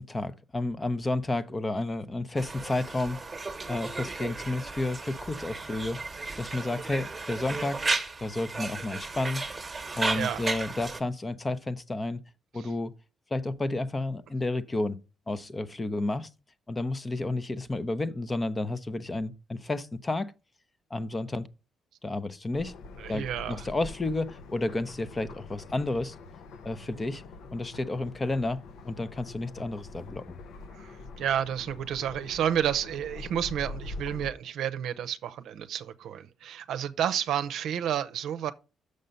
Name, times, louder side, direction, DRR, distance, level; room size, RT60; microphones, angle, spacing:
voice 1, 0.0-3.2 3.7-7.8 8.2-9.7 10.0-12.2 12.5-12.9 13.3-15.0 15.3-16.3 16.7-20.3 20.9-21.5 22.0-22.7 23.1-26.1 26.6-27.2 27.5-30.4, left 2 dB, 25° left, 0.6 m, -31 dB
Conversation, 2.4-11.0, right 3 dB, 20° right, 1.1 m, -34 dB
voice 2, 10.1-10.4 12.6-12.7 23.0-23.7 30.7-38.5, right 9 dB, 80° right, 0.6 m, -31 dB
sound 1, 22.5-34.3, left 3 dB, 75° left, 0.7 m, -44 dB
6.6 x 5.5 x 5.2 m
cardioid pair, 90°, 0 cm